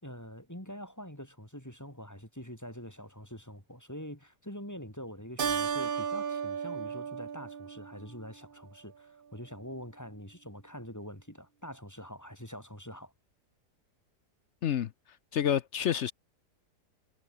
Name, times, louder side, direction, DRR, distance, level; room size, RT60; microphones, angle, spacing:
voice 1, 0.0-13.1, equal, 10° left, 5.0 m, -45 dB
Keyboard (musical), 5.4-8.3, right 7 dB, 40° right, 0.9 m, -34 dB
voice 2, 15.3-16.1, left 9 dB, 60° left, 0.8 m, -28 dB
omnidirectional pair, 1.7 m